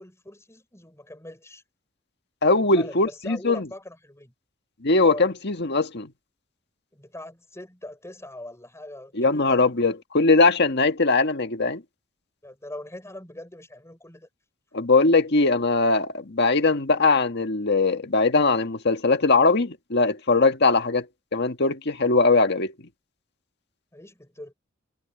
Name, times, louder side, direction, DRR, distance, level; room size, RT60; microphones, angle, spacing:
voice 1, 0.0-1.6 2.5-4.3 5.0-5.3 6.9-9.7 12.4-14.3 23.9-24.5, left 1 dB, 15° left, 5.7 m, -41 dB
voice 2, 2.4-3.6 4.8-6.1 9.1-11.8 14.7-21.1 21.3-22.7, left 3 dB, 55° left, 1.7 m, -21 dB
head